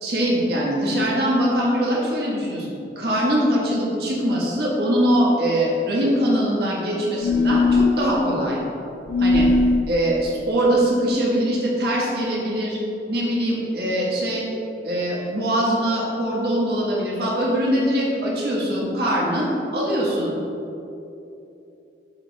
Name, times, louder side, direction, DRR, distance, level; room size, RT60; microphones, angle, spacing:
voice 1, 0.0-8.6 9.2-9.5 9.9-12.8 13.1-14.5 14.8-20.4, equal, 60° right, -5 dB, 1.5 m, -22 dB
sound 1, 7.2-8.0 9.1-9.8, left 3 dB, 65° left, 0.4 m, -18 dB
10.0 x 4.6 x 3.5 m, 2.9 s
head